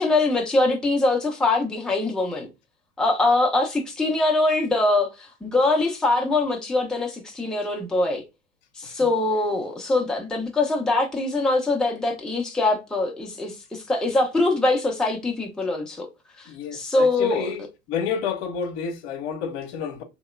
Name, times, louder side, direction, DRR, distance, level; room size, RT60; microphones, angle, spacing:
voice 1, 0.0-2.5 3.0-8.2 8.8-16.1 16.4-17.5, left 2 dB, ahead, 0.6 m, -23 dB
voice 2, 16.5-17.6 17.9-20.0, left 6 dB, 55° left, 0.8 m, -30 dB
3.0 x 2.8 x 2.3 m
figure-of-eight pair, 80°, 38 cm